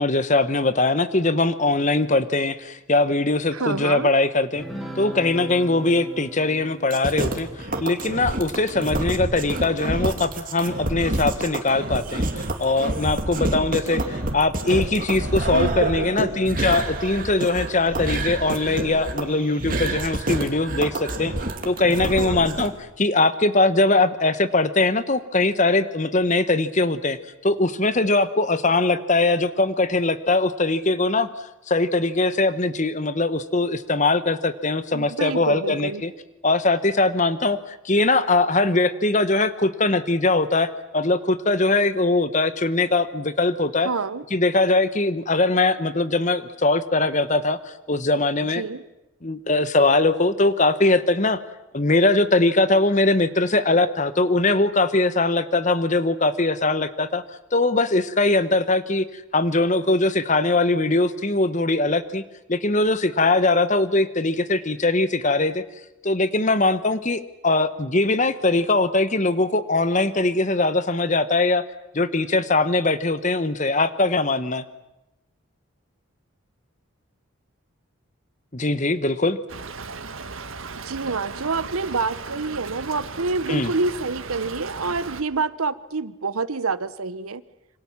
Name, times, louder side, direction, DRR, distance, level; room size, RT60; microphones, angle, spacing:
voice 1, 0.0-4.6 4.9-21.3 21.6-22.7 23.0-27.2 27.4-31.3 31.7-36.1 36.4-43.9 44.3-48.6 49.2-51.4 51.7-57.2 57.5-59.0 59.3-62.2 62.5-65.6 66.0-71.6 71.9-74.6 78.5-79.4 83.5-83.7, left 2 dB, 35° left, 13 dB, 1.2 m, -21 dB
voice 2, 3.5-4.1 15.5-16.4 22.2-22.5 34.9-36.0 43.8-44.2 48.6-48.8 80.8-87.4, right 4 dB, 85° right, 16 dB, 1.0 m, -27 dB
sound 1, 4.5-10.2, right 1 dB, ahead, 3.3 m, -40 dB
sound 2, 6.9-22.7, right 1 dB, 40° right, 2.7 m, -28 dB
Stream / Trickle dribble, 79.5-85.2, right 4 dB, 70° right, 1.6 m, -36 dB
27.0 x 25.0 x 7.3 m, 0.94 s
head